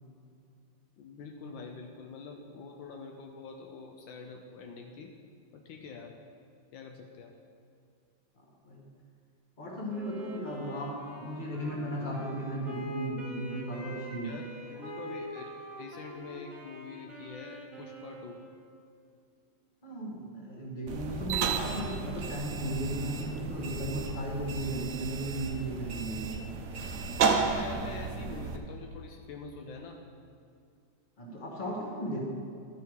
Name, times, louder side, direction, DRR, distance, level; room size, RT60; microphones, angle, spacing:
voice 1, 1.0-5.1 5.5-6.2 6.7-7.3 14.2-15.5 15.8-18.4 27.3-30.0, left 4 dB, 75° left, 2 dB, 1.4 m, -45 dB
voice 2, 9.6-14.3 19.8-26.3 31.2-32.3, right 1 dB, 25° left, -3 dB, 1.6 m, -35 dB
Wind instrument woodwind instrument, 9.9-18.7, equal, 20° right, 2.2 m, -44 dB
sound 1, 20.9-28.6, right 5 dB, 75° right, 0.6 m, -33 dB
12.5 x 5.7 x 4.7 m, 2.5 s
omnidirectional pair, 2.2 m